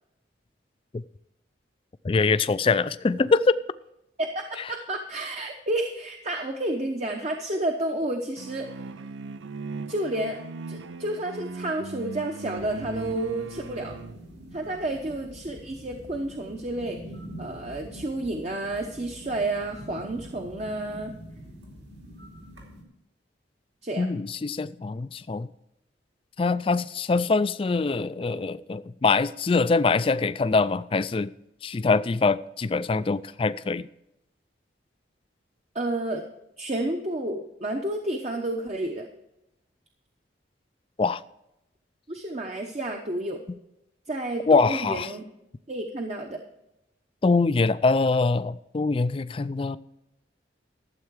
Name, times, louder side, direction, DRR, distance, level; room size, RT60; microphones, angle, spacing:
voice 1, 2.0-3.6 24.0-25.5 26.4-31.3 31.6-33.8 41.0-41.2 44.5-45.1 47.2-49.8, left 4 dB, 30° left, 0.3 m, -23 dB
voice 2, 4.2-8.8 9.9-10.4 10.7-13.9 14.5-17.0 17.4-21.1 23.8-24.1 35.7-36.2 36.6-39.1 42.1-43.4 44.1-45.2 45.7-46.4, right 1 dB, 35° right, 0.9 m, -30 dB
sound 1, 8.4-14.2, right 4 dB, 90° right, 0.5 m, -38 dB
sound 2, 12.5-22.8, right 1 dB, 70° right, 2.8 m, -44 dB
13.0 x 7.6 x 4.7 m
head